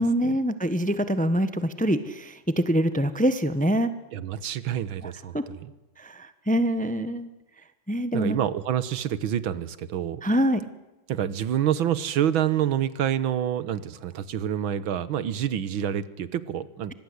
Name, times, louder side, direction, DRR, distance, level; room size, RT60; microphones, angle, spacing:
voice 1, 0.0-3.9 5.0-5.4 6.0-7.3 7.9-8.4 10.2-10.7, equal, 5° left, 12 dB, 0.9 m, -25 dB
voice 2, 4.1-5.7 8.1-10.2 11.1-16.9, right 10 dB, 80° right, 16 dB, 1.9 m, -27 dB
25.0 x 20.0 x 8.1 m, 1.0 s
omnidirectional pair, 2.2 m